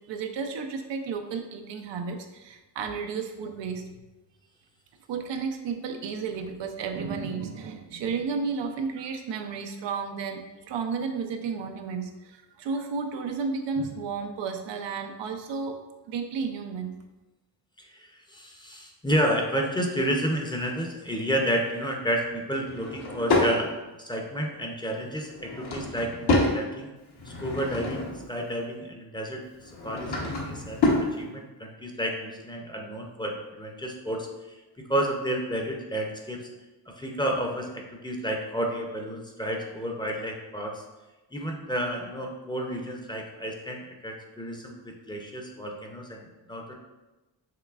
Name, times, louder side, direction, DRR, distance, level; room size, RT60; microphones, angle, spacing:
voice 1, 0.1-4.0 5.1-15.8 16.1-17.0, right 5 dB, 90° right, 5 dB, 0.6 m, -32 dB
voice 2, 17.8-26.9 27.2-34.6 34.9-36.5 36.9-40.8 41.3-46.7, equal, 10° left, 1 dB, 0.6 m, -31 dB
Drawer open or close / Wood, 22.6-23.5 25.3-26.6 27.1-28.3 29.6-31.1, left 2 dB, 65° left, 1.1 m, -27 dB
5.7 x 3.1 x 2.4 m, 1.1 s
cardioid pair, 85°, 42 cm